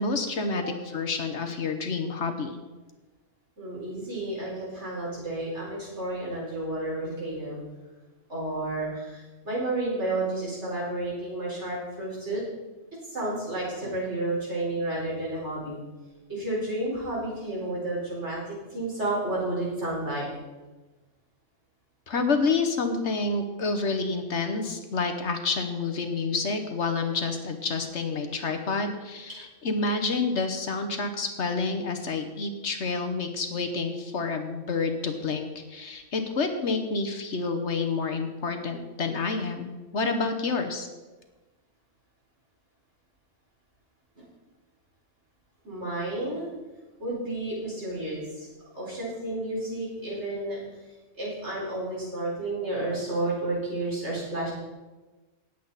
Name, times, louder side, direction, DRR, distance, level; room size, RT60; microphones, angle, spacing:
voice 1, 0.0-2.6 22.1-40.9, left 4 dB, 65° left, 6 dB, 1.4 m, -29 dB
voice 2, 3.6-7.6 8.3-12.4 13.1-15.8 16.3-18.4 18.7-20.3 44.1-44.2 45.6-46.5 47.0-48.5 48.7-50.6 51.2-54.5, right 2 dB, 60° right, -6 dB, 5.0 m, -31 dB
18.5 x 8.1 x 4.1 m, 1.2 s
omnidirectional pair, 1.3 m